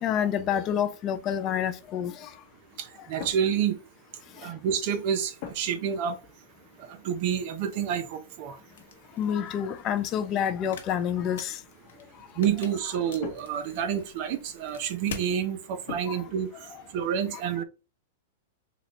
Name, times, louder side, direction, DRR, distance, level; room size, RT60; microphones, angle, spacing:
voice 1, 0.0-2.3 4.4-4.5 9.2-11.6 16.1-16.2, left 9 dB, 30° left, 0.3 m, -28 dB
voice 2, 3.1-3.8 4.4-6.2 7.0-8.6 12.4-16.5 16.9-17.6, right 8 dB, 45° right, 0.6 m, -28 dB
sound 1, 3.2-4.4 5.4-5.9 6.2-6.5 7.4-8.6 9.6-9.7 10.1-10.8 12.7-13.9 15.9-16.4, left 8 dB, 45° left, 0.8 m, -44 dB
sound 2, 8.7-15.3, left 5 dB, 80° left, 0.9 m, -46 dB
3.9 x 2.3 x 3.0 m
supercardioid pair, 155°, 0 cm